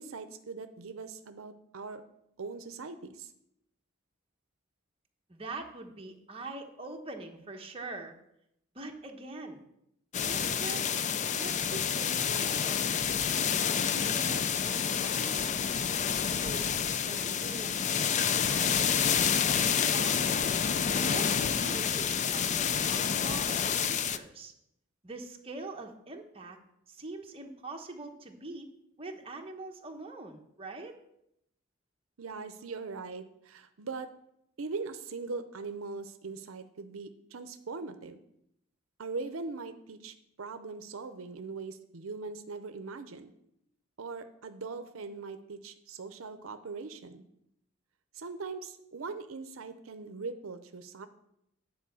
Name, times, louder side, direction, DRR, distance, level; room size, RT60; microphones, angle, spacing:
voice 1, 0.0-2.0 2.4-3.3 32.2-34.1 34.6-38.2 39.0-43.3 44.0-47.2 48.1-51.1, right 4 dB, 75° right, 9 dB, 0.6 m, -41 dB
voice 2, 5.3-8.1 8.7-9.6 10.2-11.0 11.3-15.6 16.2-18.1 18.5-19.3 19.6-20.6 20.9-24.5 25.0-26.6 26.9-28.6 29.0-30.9, right 2 dB, 25° right, 3 dB, 1.0 m, -44 dB
sound 1, 10.1-24.2, left 7 dB, 35° left, 0.4 m, -28 dB
10.0 x 4.5 x 6.9 m, 0.78 s
head